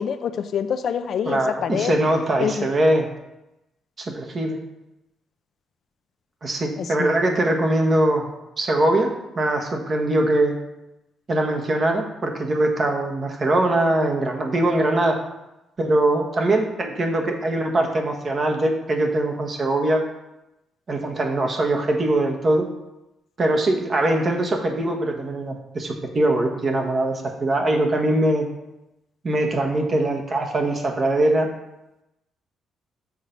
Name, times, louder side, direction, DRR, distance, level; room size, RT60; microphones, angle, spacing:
voice 1, 0.0-2.0 2.4-2.7 7.0-7.1, left 7 dB, 65° left, 9 dB, 0.5 m, -25 dB
voice 2, 1.2-3.1 4.0-4.6 6.4-8.3 8.6-10.6 11.3-15.2 15.8-20.0 20.9-22.7 23.4-28.4 29.2-31.5, right 1 dB, 40° right, 3 dB, 1.2 m, -22 dB
6.4 x 4.4 x 5.2 m, 0.93 s
cardioid pair, 90°, 0 cm